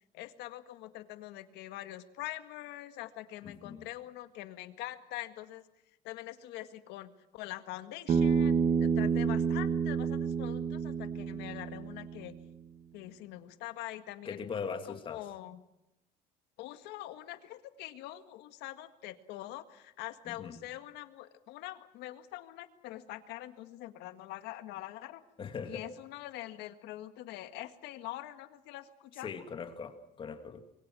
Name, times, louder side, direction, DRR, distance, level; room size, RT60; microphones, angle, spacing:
voice 1, 0.1-5.6 6.0-12.3 12.9-14.5 14.9-15.6 16.6-25.2 25.7-29.3, left 15 dB, 85° left, 10 dB, 1.8 m, -44 dB
voice 2, 3.4-3.9 9.0-9.4 14.2-15.2 20.3-20.6 25.4-25.9 29.2-30.6, left 6 dB, 30° left, 7 dB, 2.4 m, -40 dB
Bass guitar, 8.1-12.4, right 6 dB, 40° right, 1.4 m, -29 dB
26.0 x 23.5 x 6.3 m, 0.87 s
cardioid pair, 155°, 17 cm